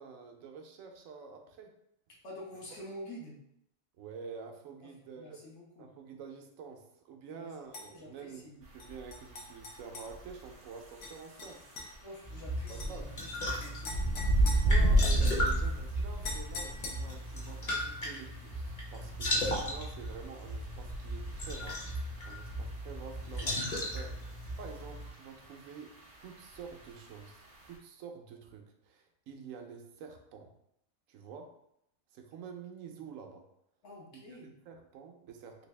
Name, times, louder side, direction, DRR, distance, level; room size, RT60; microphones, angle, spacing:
voice 1, 0.0-1.7 4.0-5.4 5.8-8.5 8.7-11.6 12.7-13.1 14.4-21.8 22.2-25.9 26.2-30.5 31.1-31.5 32.1-33.4 34.1-35.7, right 6 dB, 75° right, 4 dB, 0.9 m, -48 dB
voice 2, 2.2-3.3 4.8-4.9 5.2-5.9 7.3-7.5 7.9-8.5 12.0-14.2 33.8-34.5, left 1 dB, 55° left, -3 dB, 1.2 m, -48 dB
sound 1, 7.7-7.9 8.8-10.1 11.0-11.1 11.4-11.9 12.7-12.9 13.8-15.3 16.2-17.3, left 3 dB, 85° left, 1.3 m, -43 dB
sound 2, 8.6-27.8, right 1 dB, 40° right, 0.7 m, -35 dB
sound 3, 12.2-25.1, equal, 35° left, 0.9 m, -37 dB
3.3 x 2.6 x 3.2 m, 0.76 s
omnidirectional pair, 1.4 m